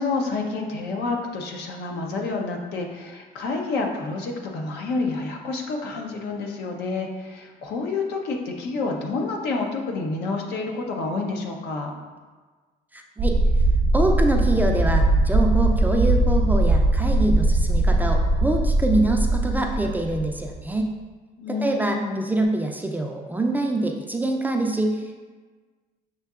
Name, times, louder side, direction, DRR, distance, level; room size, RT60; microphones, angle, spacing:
voice 1, 0.0-11.9 21.4-22.3, left 3 dB, 80° left, 1 dB, 0.7 m, -29 dB
voice 2, 12.9-13.4 13.9-20.9 21.5-25.2, right 2 dB, 10° right, 2 dB, 0.4 m, -25 dB
sound 1, 13.2-20.8, right 1 dB, 50° right, 0.7 m, -20 dB
6.6 x 2.8 x 2.4 m, 1.4 s
cardioid pair, 110°, 17 cm